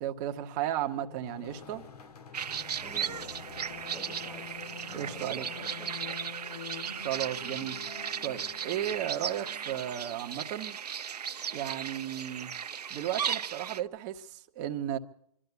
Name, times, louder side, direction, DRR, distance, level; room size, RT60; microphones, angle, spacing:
voice 1, 0.0-1.8 4.9-5.5 6.9-7.8 8.2-10.8 11.5-12.5 12.9-15.0, right 11 dB, 30° right, 1.3 m, -34 dB
sound 1, 0.8-10.0, left 5 dB, 75° left, 2.3 m, -46 dB
sound 2, 2.3-13.8, right 8 dB, 85° right, 0.8 m, -36 dB
voice 2, 2.8-3.6 3.8-4.6 4.9-6.2, right 3 dB, ahead, 1.2 m, -49 dB
25.5 x 12.5 x 8.2 m
hypercardioid pair, 150°, 20 cm